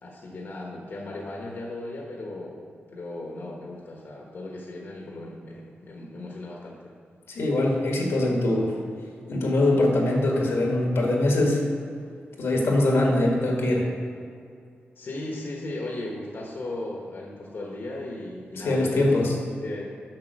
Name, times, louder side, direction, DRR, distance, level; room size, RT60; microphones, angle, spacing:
voice 1, 0.0-6.8 15.0-19.1 19.5-19.8, left 2 dB, 60° left, -2 dB, 1.2 m, -36 dB
voice 2, 7.3-8.8 9.3-11.6 12.4-13.9 18.6-19.3, left 1 dB, 85° left, -1 dB, 1.8 m, -22 dB
7.5 x 5.8 x 6.4 m, 2.3 s
wide cardioid pair, 100°, 4 cm